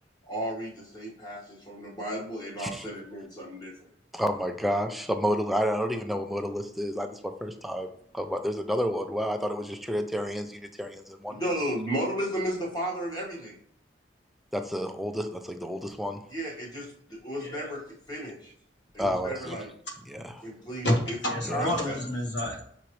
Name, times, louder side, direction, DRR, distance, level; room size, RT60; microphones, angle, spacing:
voice 1, 0.2-3.9 11.3-13.5 16.3-17.8 18.1-18.5 18.9-19.7 20.4-21.2 21.5-22.0, equal, 25° left, -3 dB, 1.5 m, -34 dB
voice 2, 4.1-7.9 8.1-11.4 14.5-16.2 19.0-19.6 20.1-20.4 21.4-21.7, equal, ahead, 5 dB, 0.4 m, -30 dB
voice 3, 17.4-17.7 20.8-22.6, left 1 dB, 70° left, 1 dB, 1.3 m, -29 dB
5.9 x 2.9 x 3.0 m, 0.67 s
head